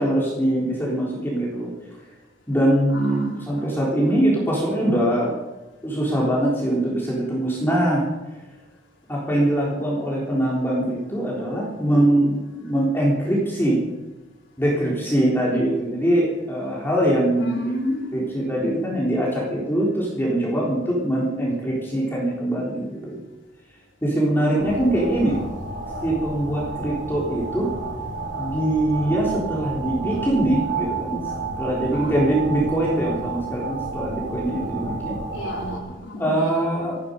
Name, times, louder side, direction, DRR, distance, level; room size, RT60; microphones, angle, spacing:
voice 1, 0.0-1.7 2.5-5.4 5.8-8.1 9.1-13.8 14.6-17.7 18.1-23.2 24.0-25.4 26.0-27.7 28.4-31.2 31.6-35.2 36.2-37.0, right 1 dB, 10° left, -5 dB, 3.9 m, -22 dB
voice 2, 2.9-3.5 4.0-4.1 17.4-18.1 24.5-24.8 25.1-25.4 27.9-28.1 31.9-32.2 35.3-36.6, left 1 dB, 70° left, -1 dB, 4.5 m, -31 dB
sound 1, 24.6-35.8, right 4 dB, 60° right, 3.8 m, -31 dB
17.5 x 15.0 x 5.3 m, 1.1 s
head